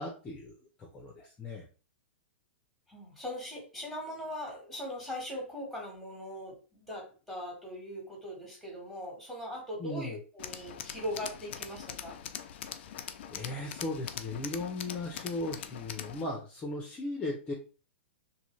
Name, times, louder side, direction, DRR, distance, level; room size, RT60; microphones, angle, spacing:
voice 1, 0.0-1.7 9.8-10.2 13.0-17.5, left 2 dB, 20° left, 0 dB, 0.7 m, -37 dB
voice 2, 2.9-12.2, equal, ahead, -2 dB, 1.4 m, -40 dB
Tools, 10.4-16.2, left 9 dB, 65° left, 0.4 m, -42 dB
2.7 x 2.5 x 3.1 m, 0.35 s
hypercardioid pair, 135°, 7 cm